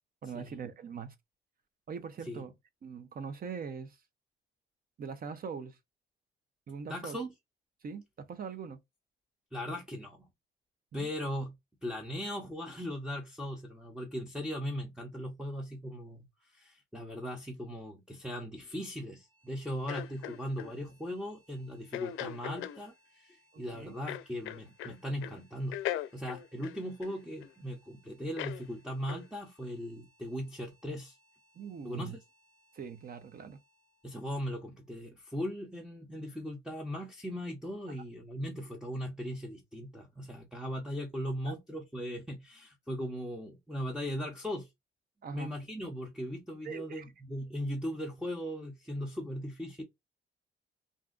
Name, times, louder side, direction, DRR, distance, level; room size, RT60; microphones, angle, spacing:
voice 1, 0.2-1.1 1.9-2.5 2.8-4.0 5.0-5.8 6.7-7.2 7.8-8.8 10.9-11.1 23.5-23.9 31.6-32.2 32.7-33.6 41.5-41.6 45.2-45.5 46.6-47.1, right 6 dB, 50° right, 0.7 m, -42 dB
voice 2, 6.9-7.3 9.5-10.3 10.9-11.5 11.8-25.8 26.1-31.2 31.8-32.2 34.0-44.7 45.3-49.8, equal, 5° right, 0.8 m, -38 dB
sound 1, 19.1-36.1, right 1 dB, 80° right, 1.4 m, -69 dB
sound 2, 19.9-20.7 21.9-22.8 24.1-25.0 25.2-25.4 25.7-27.5 28.4-28.6 29.1-29.3, left 12 dB, 85° left, 0.4 m, -38 dB
2.6 x 2.2 x 3.8 m
cardioid pair, 90°, 20 cm